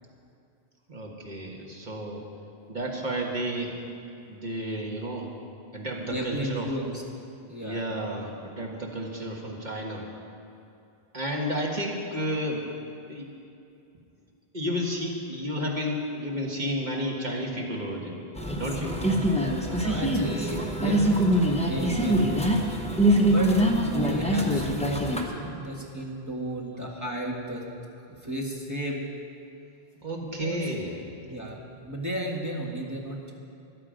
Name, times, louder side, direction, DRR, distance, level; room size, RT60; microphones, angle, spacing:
voice 1, 0.9-2.2 2.7-3.8 4.3-5.3 5.7-6.7 7.6-10.1 11.1-12.6 13.1-13.3 14.5-18.2 18.6-19.0 30.0-31.0, equal, 45° right, -1 dB, 1.7 m, -32 dB
voice 2, 6.1-7.0 7.5-7.8 19.8-22.5 23.3-27.6 28.1-29.0 30.0-30.6 31.2-33.3, right 1 dB, 15° right, -2 dB, 1.7 m, -34 dB
sound 1, 18.4-25.2, right 1 dB, 5° left, 0.9 m, -24 dB
14.0 x 11.0 x 5.1 m, 2.6 s
omnidirectional pair, 1.0 m